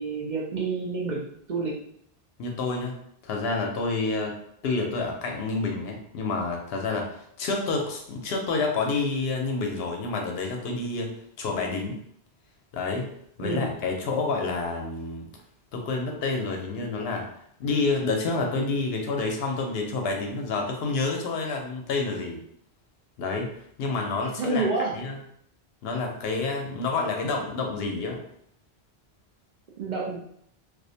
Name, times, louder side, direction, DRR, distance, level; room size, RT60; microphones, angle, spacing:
voice 1, 0.0-1.8 13.4-13.8 24.4-25.0 29.8-30.2, right 3 dB, 55° right, -3 dB, 0.5 m, -29 dB
voice 2, 2.4-2.9 3.2-4.3 4.6-11.1 11.4-12.0 12.7-13.1 13.4-15.2 15.7-17.3 17.6-22.4 23.2-23.5 23.8-24.7 24.9-25.2 25.8-28.2, left 3 dB, 75° left, 1 dB, 0.8 m, -28 dB
2.4 x 2.0 x 2.6 m, 0.68 s
omnidirectional pair, 1.1 m